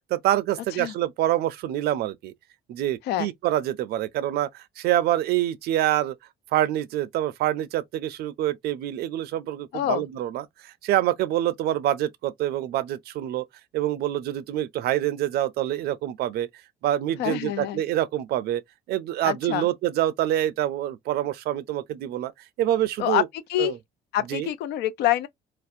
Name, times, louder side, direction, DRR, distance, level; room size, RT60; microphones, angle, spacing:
voice 1, 0.1-2.3 2.7-6.2 6.5-13.5 13.7-16.5 16.8-18.6 18.9-22.3 22.6-23.3 23.6-23.8 24.3-24.5, right 13 dB, 70° right, 0.4 m, -26 dB
voice 2, 9.7-10.0 17.2-17.8 19.2-19.7 23.0-23.2 23.5-23.7 24.1-25.3, left 13 dB, 75° left, 0.4 m, -26 dB
2.4 x 2.1 x 2.5 m
cardioid pair, 110°, 17 cm